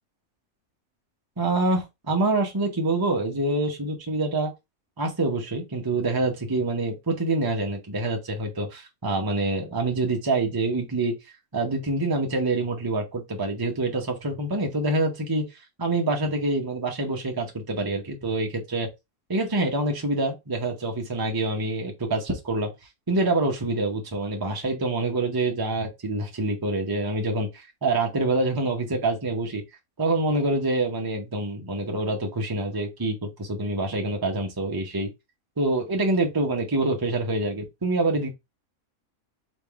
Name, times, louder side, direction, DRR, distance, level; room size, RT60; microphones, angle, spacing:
voice 1, 1.4-4.5 5.0-11.1 11.5-15.4 15.8-18.9 19.3-22.7 23.1-29.6 30.0-35.1 35.6-38.3, right 2 dB, 20° right, 0.8 m, -26 dB
3.6 x 3.1 x 4.6 m
omnidirectional pair, 1.6 m